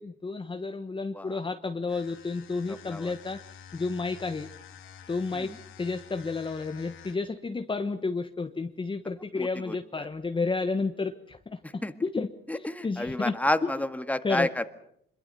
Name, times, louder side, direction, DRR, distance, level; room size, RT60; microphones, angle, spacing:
voice 1, 0.0-4.5 5.1-5.5 5.8-13.3 14.2-14.6, left 3 dB, 25° left, 7 dB, 1.3 m, -31 dB
sound 1, 1.8-7.4, left 8 dB, 85° left, 2.6 m, -49 dB
voice 2, 2.7-3.1 5.3-5.6 9.3-10.1 11.6-11.9 12.5-14.6, left 1 dB, 5° left, 10 dB, 1.8 m, -30 dB
25.0 x 22.0 x 6.9 m, 0.71 s
cardioid pair, 90°, 20 cm